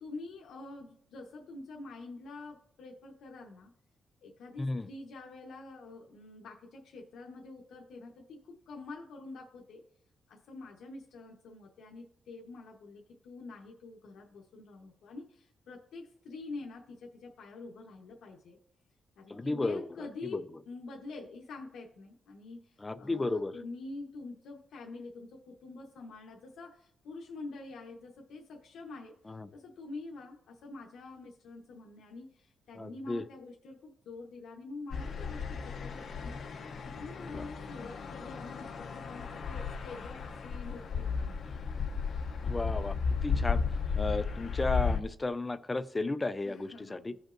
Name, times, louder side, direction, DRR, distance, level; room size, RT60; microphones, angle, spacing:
voice 1, 0.0-3.7 4.2-9.8 10.3-18.6 19.2-20.4 20.7-29.1 29.5-36.4 36.8-41.6 46.4-47.2, left 3 dB, 85° left, -1 dB, 1.0 m, -46 dB
voice 2, 4.6-4.9 19.3-20.4 22.8-23.6 29.3-29.5 32.7-33.2 37.2-37.5 42.4-43.0 43.2-43.6 43.9-47.1, left 2 dB, 15° left, 12 dB, 0.4 m, -34 dB
sound 1, 34.9-45.0, left 5 dB, 55° left, 0.6 m, -34 dB
15.5 x 5.3 x 2.6 m, 0.66 s
wide cardioid pair, 145°, 0 cm